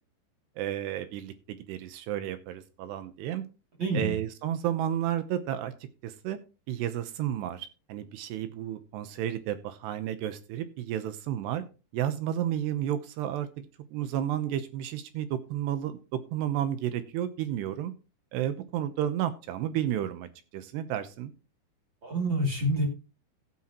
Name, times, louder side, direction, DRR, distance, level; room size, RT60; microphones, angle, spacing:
voice 1, 0.6-3.4 3.9-5.7 6.0-6.4 6.7-11.6 11.9-13.7 13.9-17.9 18.3-21.3, right 11 dB, 75° right, 11 dB, 2.8 m, -32 dB
voice 2, 3.8-4.1 22.0-22.9, right 1 dB, 30° right, 0 dB, 2.7 m, -27 dB
15.0 x 9.8 x 3.0 m, 0.32 s
omnidirectional pair, 5.3 m